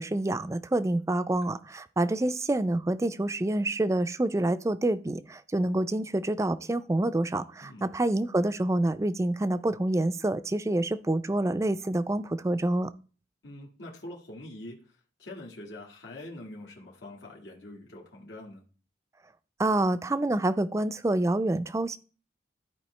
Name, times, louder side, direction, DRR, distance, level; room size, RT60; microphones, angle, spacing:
voice 1, 0.0-12.9 19.6-22.0, right 1 dB, 15° right, 13 dB, 0.3 m, -27 dB
voice 2, 13.4-14.8 15.2-18.6, left 1 dB, 85° left, -2 dB, 1.7 m, -44 dB
13.0 x 4.6 x 3.2 m, 0.37 s
head